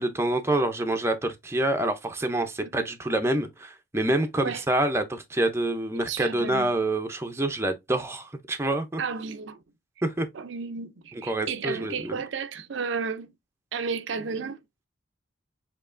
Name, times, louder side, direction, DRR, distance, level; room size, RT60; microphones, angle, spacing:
voice 1, 0.0-9.0 10.0-10.3 11.3-12.2, right 1 dB, 15° right, 0.5 m, -27 dB
voice 2, 6.0-6.7 9.0-9.6 10.3-13.3 13.7-14.6, right 5 dB, 65° right, 0.5 m, -33 dB
6.8 x 2.9 x 2.5 m
head